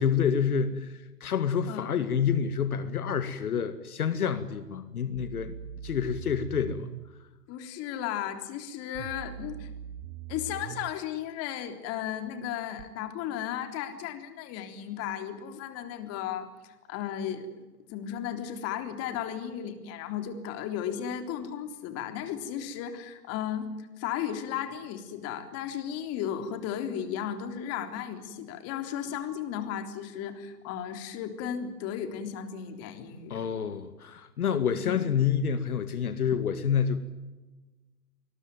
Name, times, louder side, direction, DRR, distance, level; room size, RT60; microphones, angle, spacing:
voice 1, 0.0-5.6 5.8-6.9 33.3-37.0, left 7 dB, 70° left, 11 dB, 2.1 m, -28 dB
sound 1, 5.2-7.1 9.0-11.0 12.8-12.9, right 10 dB, 40° right, 1.2 m, -42 dB
voice 2, 7.5-9.7 10.3-17.5 17.9-33.4 34.7-35.0, left 9 dB, 30° left, 7 dB, 3.7 m, -35 dB
25.0 x 21.5 x 9.2 m, 1.2 s
hypercardioid pair, 120°, 46 cm